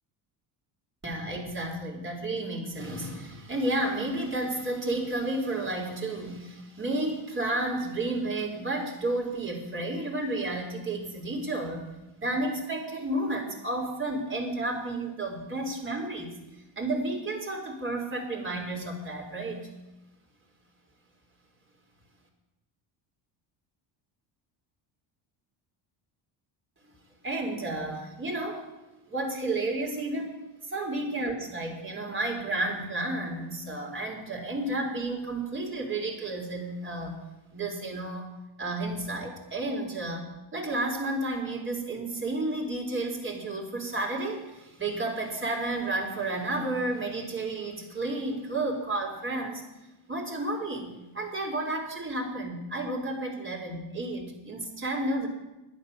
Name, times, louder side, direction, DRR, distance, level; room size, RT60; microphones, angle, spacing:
voice 1, 1.0-16.4 16.8-19.7 27.2-28.7 29.1-30.3 30.6-37.2 37.5-38.3 38.6-49.6 50.1-55.3, right 2 dB, 25° right, 0 dB, 4.1 m, -32 dB
11.5 x 10.5 x 6.7 m, 0.99 s
supercardioid pair, 95°, 49 cm